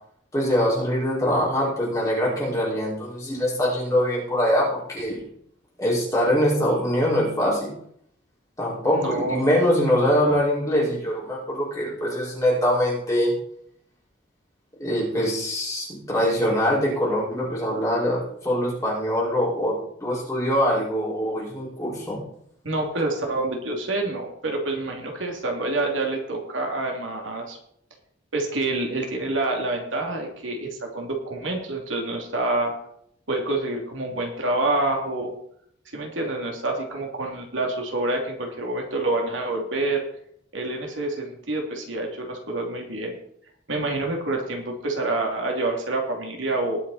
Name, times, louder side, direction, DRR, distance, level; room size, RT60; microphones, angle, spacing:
voice 1, 0.3-5.2 5.8-7.7 8.6-13.4 14.8-22.2, equal, 15° left, -5 dB, 5.1 m, -23 dB
voice 2, 8.9-9.4 22.6-27.6 28.3-32.8 33.3-35.3 35.9-40.0 40.5-43.2 43.7-46.8, right 2 dB, 80° right, 1 dB, 2.8 m, -27 dB
20.0 x 7.1 x 4.2 m, 0.68 s
head